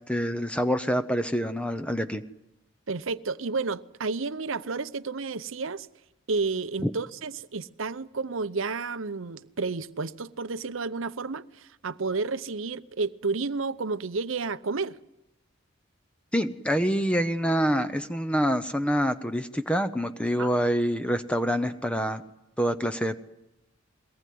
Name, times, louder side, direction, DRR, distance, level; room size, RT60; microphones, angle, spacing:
voice 1, 0.1-2.2 6.8-6.9 16.3-22.2 22.6-23.2, equal, 5° left, 0.8 m, -26 dB
voice 2, 2.9-5.9 6.3-15.0 20.4-20.5, right 4 dB, 75° right, 0.8 m, -31 dB
22.5 x 18.5 x 9.4 m
head